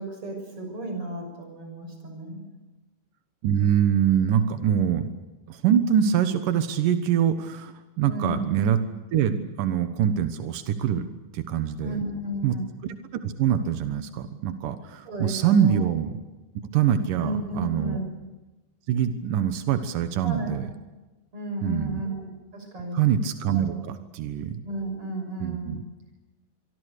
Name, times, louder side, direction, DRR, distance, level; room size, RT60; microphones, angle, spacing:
voice 1, 0.0-2.4 8.1-8.5 11.8-12.7 15.1-15.9 17.2-18.1 20.2-20.6 21.3-23.0 23.7-23.9 24.6-25.8, right 1 dB, 25° right, 4 dB, 7.0 m, -33 dB
voice 2, 3.4-5.1 5.5-8.8 9.1-12.0 12.4-12.6 13.2-16.1 16.7-18.0 18.9-20.7 21.6-22.0 22.9-24.6 25.4-25.8, right 9 dB, 80° right, 9 dB, 1.9 m, -24 dB
25.5 x 24.5 x 6.7 m, 1.1 s
omnidirectional pair, 5.7 m